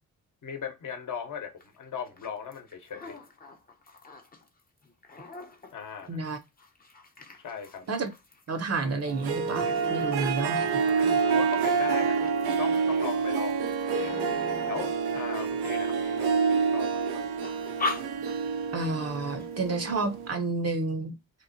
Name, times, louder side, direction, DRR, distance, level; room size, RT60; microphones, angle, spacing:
voice 1, 0.4-3.2 5.7-6.2 7.4-7.8 11.0-12.2 12.6-14.2 14.7-17.0, left 7 dB, 55° left, 0.9 m, -38 dB
sound 1, 1.6-1.7 2.0-4.5 4.8-16.2 16.6-17.0 17.4-18.7 19.0-19.1 19.4-19.7, left 3 dB, 25° left, 0.7 m, -40 dB
voice 2, 6.1-6.4 7.9-8.1 8.5-10.7 18.7-21.1, right 3 dB, 40° right, 0.7 m, -30 dB
Harp, 9.1-20.3, right 5 dB, 85° right, 0.5 m, -28 dB
2.9 x 2.1 x 2.5 m
supercardioid pair, 50°, 38 cm